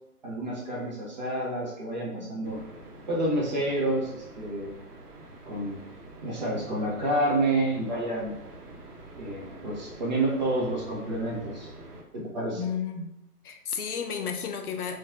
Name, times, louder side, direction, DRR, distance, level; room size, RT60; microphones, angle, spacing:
voice 1, 0.2-2.6 3.1-4.7 5.5-5.8 6.2-8.3 9.2-11.7 12.1-12.6, right 1 dB, 30° right, -5 dB, 0.5 m, -29 dB
sound 1, 2.4-12.0, right 2 dB, 75° right, 0.7 m, -46 dB
voice 2, 12.5-13.1 13.4-15.0, left 7 dB, 70° left, 5 dB, 0.5 m, -32 dB
2.6 x 2.2 x 2.3 m, 0.87 s
figure-of-eight pair, 130°, 46 cm